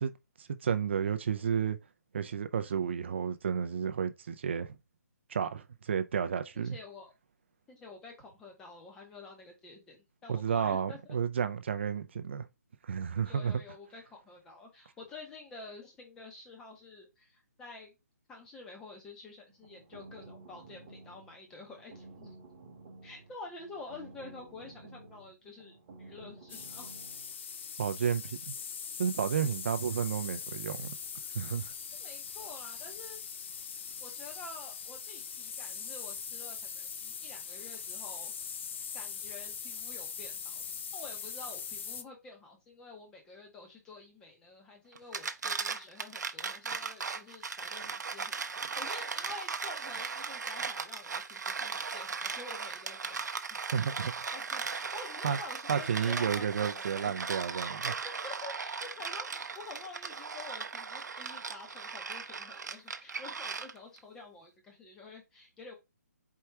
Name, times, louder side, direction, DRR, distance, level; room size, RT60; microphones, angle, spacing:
voice 1, 0.4-1.8 2.1-4.8 5.3-6.8 10.3-12.4 12.8-13.6 27.8-28.5 29.0-30.9 31.3-31.7 53.7-54.1 55.2-55.4 55.7-57.9, right 7 dB, 40° right, 0.4 m, -31 dB
voice 2, 6.5-7.1 7.7-11.2 13.3-17.9 18.3-22.3 23.0-26.9 32.0-33.2 34.0-38.3 38.9-40.6 40.9-48.3 48.7-53.2 53.5-53.6 54.1-57.1 58.0-65.7, left 3 dB, 5° left, 0.7 m, -49 dB
sound 1, 19.5-27.3, right 3 dB, 25° right, 1.0 m, -53 dB
sound 2, 26.5-42.0, left 6 dB, 40° left, 0.3 m, -41 dB
sound 3, 44.9-64.0, right 5 dB, 90° right, 0.6 m, -37 dB
4.6 x 2.3 x 4.2 m
hypercardioid pair, 170°, 9 cm